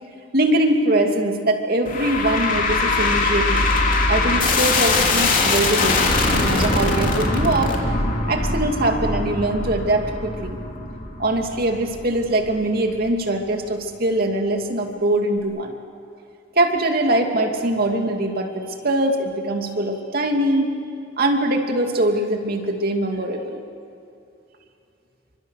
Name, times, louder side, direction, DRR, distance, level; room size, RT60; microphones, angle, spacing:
voice 1, 0.3-3.7 4.1-7.8 8.3-10.6 11.2-15.7 16.5-20.7 21.2-23.6, right 1 dB, 55° right, 3 dB, 2.6 m, -22 dB
sound 1, 1.9-13.1, left 3 dB, 45° left, 3.1 m, -22 dB
29.5 x 25.0 x 6.6 m, 2.7 s
head